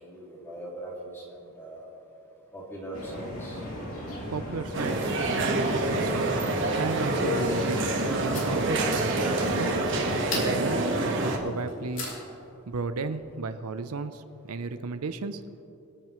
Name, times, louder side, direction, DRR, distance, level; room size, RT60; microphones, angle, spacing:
voice 1, 0.0-1.9 2.5-3.6, right 1 dB, 10° left, -3 dB, 2.3 m, -41 dB
sound 1, 2.9-10.2, left 1 dB, 75° left, 2.8 m, -36 dB
voice 2, 4.3-5.1 5.5-6.3 6.6-7.8 8.1-9.8 10.3-12.1 12.7-15.6, right 4 dB, 85° right, 10 dB, 0.6 m, -34 dB
sound 2, 4.7-11.4, right 2 dB, 55° right, 1.5 m, -27 dB
sound 3, 7.0-12.5, left 2 dB, 55° left, 3.5 m, -41 dB
25.0 x 9.1 x 3.1 m, 2.8 s
head